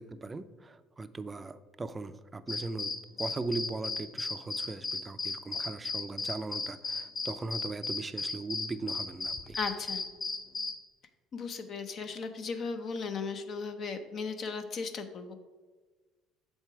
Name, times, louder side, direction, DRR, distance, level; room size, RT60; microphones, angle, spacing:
voice 1, 0.0-2.9 3.2-9.6, right 3 dB, 25° right, 13 dB, 0.4 m, -39 dB
sound 1, 2.5-10.7, left 3 dB, 35° left, 0.9 m, -35 dB
voice 2, 9.5-10.0 11.3-15.4, left 4 dB, 50° left, 7 dB, 0.6 m, -36 dB
6.7 x 4.5 x 4.7 m, 1.3 s
supercardioid pair, 75°, 0 cm